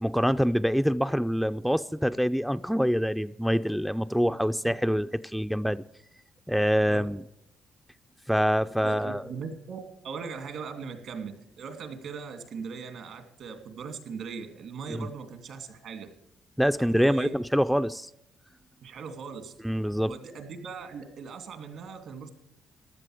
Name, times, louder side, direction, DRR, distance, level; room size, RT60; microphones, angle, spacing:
voice 1, 0.0-5.8 6.5-7.2 8.3-9.2 14.9-15.1 16.6-18.1 19.6-20.1, equal, ahead, 0.4 m, -25 dB
voice 2, 8.8-9.8 10.0-16.1 16.8-17.3 18.8-19.5 20.0-22.3, right 5 dB, 75° right, 2.6 m, -39 dB
15.5 x 11.0 x 4.9 m
cardioid pair, 90°, 0 cm